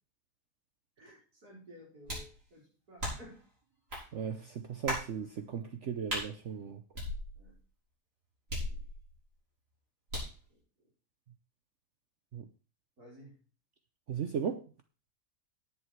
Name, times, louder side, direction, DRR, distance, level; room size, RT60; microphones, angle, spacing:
voice 1, 1.0-3.4 7.4-7.6 8.7-8.8 10.5-10.6 13.0-13.4, equal, 70° right, 5.5 m, -54 dB
sound 1, 2.1-2.4 3.0-3.4 3.9-4.1 4.9-5.1 6.1-6.3 6.9-7.6 8.5-9.2 10.1-10.4, equal, 85° right, 6.3 m, -37 dB
voice 2, 4.1-6.8 12.3-12.5 14.1-14.7, right 7 dB, 55° right, 1.0 m, -37 dB
10.5 x 8.5 x 4.6 m
omnidirectional pair, 1.7 m